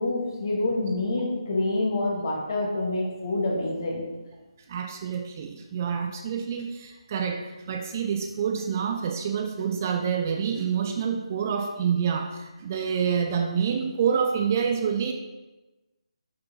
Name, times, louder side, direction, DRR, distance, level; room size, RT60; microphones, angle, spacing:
voice 1, 0.0-4.0, left 2 dB, 40° left, -2 dB, 2.4 m, -27 dB
voice 2, 4.7-7.4 7.7-15.1, right 7 dB, 30° right, 4 dB, 0.6 m, -27 dB
8.3 x 6.7 x 4.2 m, 1.1 s
figure-of-eight pair, 150°, 3 cm